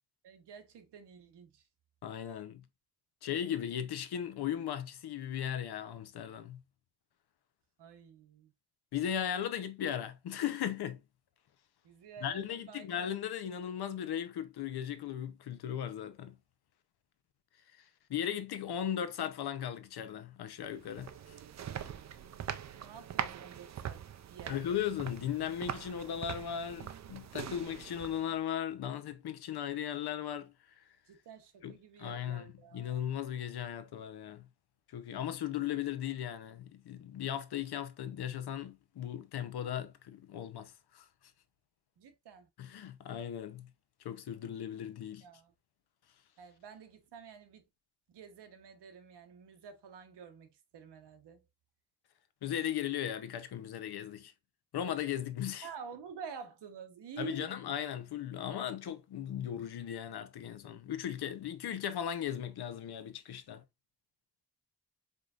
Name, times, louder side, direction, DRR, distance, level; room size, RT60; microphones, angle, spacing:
voice 1, 0.2-1.6 7.8-8.5 11.8-12.9 22.8-24.6 31.1-33.1 42.0-42.5 45.2-45.5 46.4-47.6 48.1-51.4 55.6-57.5, right 5 dB, 85° right, 1.1 m, -49 dB
voice 2, 2.0-2.6 3.2-6.6 8.9-11.0 12.2-16.4 17.8-17.9 18.1-21.1 24.5-30.8 31.6-34.5 34.9-41.1 42.6-43.7 44.0-45.3 52.4-54.3 54.7-55.7 57.2-63.6, left 9 dB, 70° left, 0.7 m, -37 dB
sound 1, 20.6-28.4, right 9 dB, 45° right, 0.4 m, -42 dB
4.8 x 3.9 x 2.4 m
wide cardioid pair, 170°, 40 cm